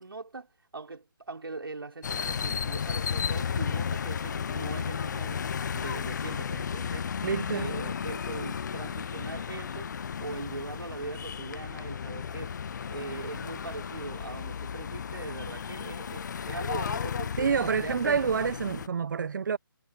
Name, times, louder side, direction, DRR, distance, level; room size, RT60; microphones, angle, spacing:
voice 1, 0.0-7.2 7.5-12.6 12.9-17.5 17.8-18.1, right 3 dB, 80° right, 5.3 m, -41 dB
sound 1, 2.0-18.9, left 7 dB, 55° left, 0.5 m, -34 dB
voice 2, 7.2-7.7 17.4-19.6, right 6 dB, 55° right, 1.1 m, -28 dB
figure-of-eight pair, 155°, 12 cm